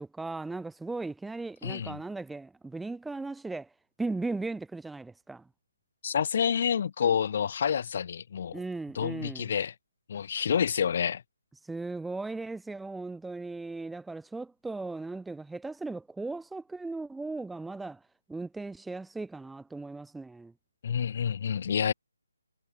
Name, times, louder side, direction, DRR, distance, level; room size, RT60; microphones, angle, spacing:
voice 1, 0.0-3.7 4.0-5.5 8.5-9.5 11.6-18.0 18.3-20.5, right 3 dB, 5° right, 0.6 m, -37 dB
voice 2, 1.6-2.0 6.0-8.6 8.9-9.7 10.1-11.2 20.8-21.9, left 7 dB, 50° left, 0.9 m, -28 dB
figure-of-eight pair, 150°, 0 cm